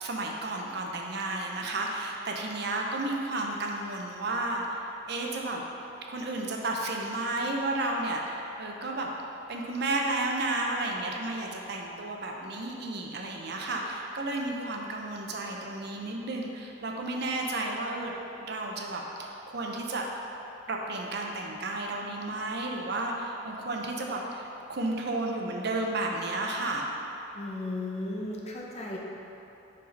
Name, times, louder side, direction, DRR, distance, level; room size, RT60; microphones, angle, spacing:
voice 1, 0.0-5.7 6.1-9.1 9.5-20.0 20.7-26.9, right 2 dB, 55° right, 0 dB, 0.6 m, -32 dB
voice 2, 27.3-29.0, left 2 dB, 30° left, -2 dB, 0.7 m, -35 dB
4.8 x 4.7 x 5.3 m, 2.9 s
head